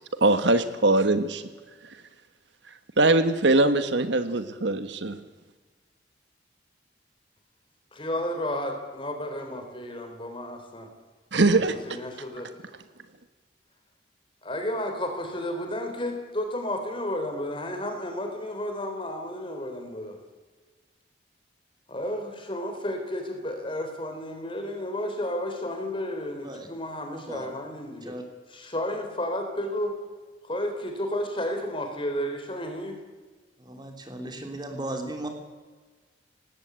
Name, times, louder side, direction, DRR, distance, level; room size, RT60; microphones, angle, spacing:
voice 1, 0.2-1.4 3.0-5.2 11.3-11.8, right 2 dB, 75° right, 11 dB, 1.3 m, -21 dB
voice 2, 7.9-10.9 11.5-12.5 14.4-20.2 21.9-28.1 28.5-30.0 30.4-33.0, left 1 dB, 30° left, 5 dB, 3.9 m, -32 dB
voice 3, 27.1-27.5 28.0-28.2 33.6-35.3, right 1 dB, 25° right, 4 dB, 3.1 m, -36 dB
19.0 x 17.0 x 8.2 m, 1.4 s
head